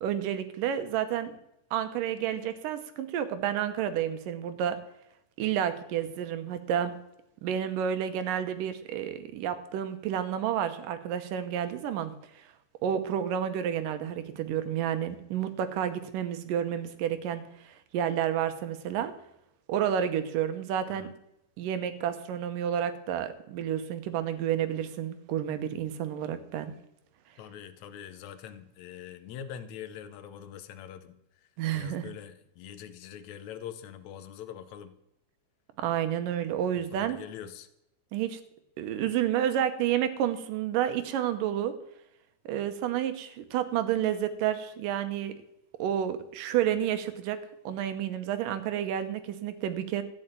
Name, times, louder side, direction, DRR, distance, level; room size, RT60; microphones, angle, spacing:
voice 1, 0.0-1.4 1.7-4.8 5.4-6.9 7.4-12.1 12.8-19.1 19.7-21.1 21.6-26.7 31.6-32.1 35.8-37.2 38.1-38.4 38.8-41.7 42.5-45.3 45.8-47.4 47.6-50.0, right 10 dB, 80° right, 10 dB, 2.6 m, -30 dB
voice 2, 27.4-31.2 31.7-34.9 36.7-37.7, left 9 dB, 70° left, 11 dB, 1.9 m, -43 dB
13.5 x 5.5 x 9.0 m, 0.82 s
omnidirectional pair, 3.8 m